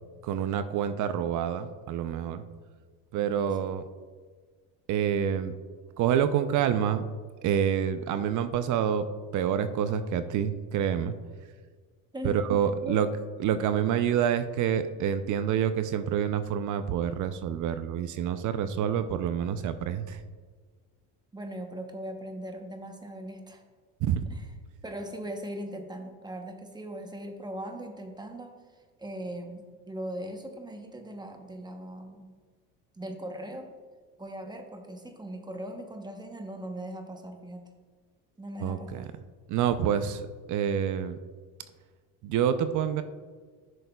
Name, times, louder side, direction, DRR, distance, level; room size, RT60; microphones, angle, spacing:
voice 1, 0.2-2.4 3.1-3.9 4.9-5.5 6.0-7.0 7.4-9.0 9.3-11.1 12.2-13.1 13.4-20.2 24.0-24.2 38.6-39.1 39.5-41.2 42.2-43.0, right 9 dB, 55° right, 11 dB, 0.5 m, -27 dB
voice 2, 3.2-3.7 12.1-12.4 12.8-13.0 18.7-18.8 21.3-23.6 24.3-24.4 24.8-28.6 29.0-32.3 33.0-33.7 34.2-37.7 38.4-39.1, right 1 dB, 10° right, 4 dB, 0.8 m, -39 dB
10.5 x 6.3 x 2.3 m, 1.5 s
supercardioid pair, 110°, 37 cm